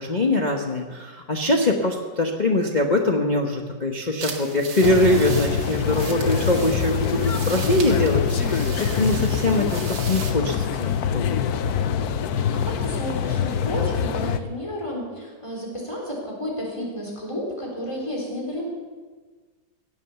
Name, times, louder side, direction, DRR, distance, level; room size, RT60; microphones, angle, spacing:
voice 1, 0.0-11.4, left 1 dB, 30° left, 1 dB, 0.9 m, -23 dB
sound 1, 4.2-10.3, right 5 dB, 85° right, 2.3 m, -37 dB
sound 2, 4.8-14.4, left 7 dB, 65° left, 1.1 m, -24 dB
voice 2, 12.5-18.7, equal, 15° left, -2 dB, 3.7 m, -31 dB
17.0 x 8.7 x 6.9 m, 1.4 s
omnidirectional pair, 2.0 m